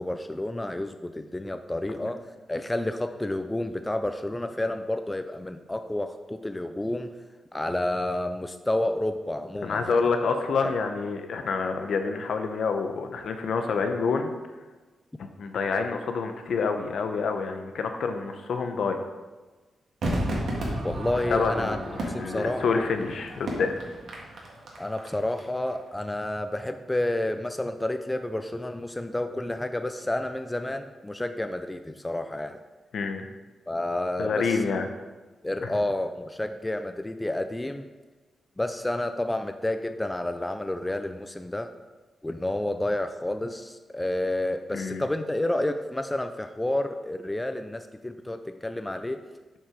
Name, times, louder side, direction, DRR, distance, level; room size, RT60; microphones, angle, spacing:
voice 1, 0.0-7.1 7.5-10.1 10.6-10.7 20.8-21.8 22.1-22.8 24.8-32.6 33.7-34.6 35.4-37.9 38.6-41.7 42.2-49.2, left 1 dB, 10° left, 8 dB, 0.3 m, -30 dB
voice 2, 9.6-14.3 15.4-19.0 21.3-23.7 32.9-33.2 34.2-34.9 35.6-35.8 44.7-45.0, left 5 dB, 70° left, 6 dB, 0.8 m, -27 dB
Crowd / Fireworks, 20.0-25.4 25.7-25.8, right 1 dB, 65° right, 1.7 m, -33 dB
7.4 x 4.6 x 5.1 m, 1.3 s
wide cardioid pair, 125°, 0 cm